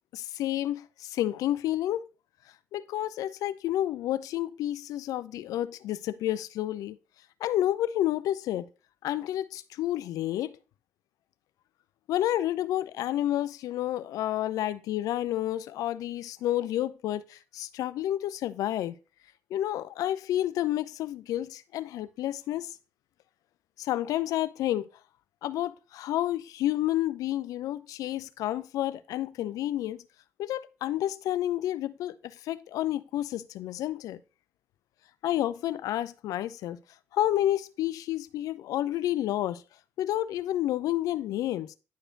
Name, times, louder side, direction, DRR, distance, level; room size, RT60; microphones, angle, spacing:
voice 1, 0.1-2.1 2.7-7.0 7.4-8.7 9.0-10.6 12.1-18.9 19.5-22.7 23.8-24.9 25.4-30.0 30.4-34.2 35.2-36.8 37.1-39.6 40.0-41.7, left 13 dB, 70° left, 0.4 m, -30 dB
10.0 x 4.8 x 2.6 m
hypercardioid pair, 45°, 6 cm